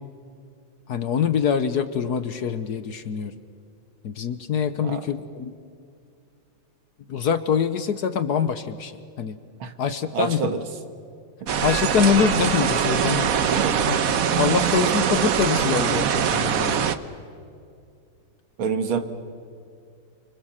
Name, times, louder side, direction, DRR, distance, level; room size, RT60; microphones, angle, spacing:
voice 1, 0.9-3.3 4.0-5.5 7.1-8.9 9.2-9.4 9.8-10.4 11.6-13.3 13.9-14.0 14.4-16.9, left 7 dB, 60° left, 11 dB, 1.2 m, -24 dB
voice 2, 10.1-10.7 11.4-11.6 13.5-13.8 18.6-19.0, right 6 dB, 75° right, 7 dB, 2.3 m, -27 dB
sound 1, 11.5-17.0, right 8 dB, 55° right, 1.1 m, -22 dB
30.0 x 24.5 x 7.4 m, 2.4 s
omnidirectional pair, 2.3 m